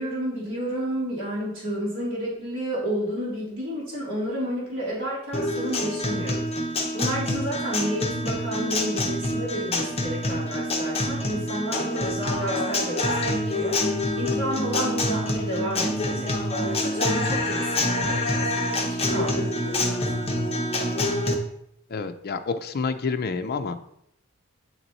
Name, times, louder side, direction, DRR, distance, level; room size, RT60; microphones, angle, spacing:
voice 1, 0.0-6.4 6.9-16.3 16.6-18.5 18.9-20.0, equal, 60° right, -8 dB, 1.8 m, -31 dB
Guitar, 5.3-21.3, left 1 dB, 30° left, 0.9 m, -26 dB
voice 2, 21.9-23.9, left 4 dB, 45° left, 9 dB, 0.4 m, -29 dB
8.7 x 3.0 x 4.0 m, 0.75 s
head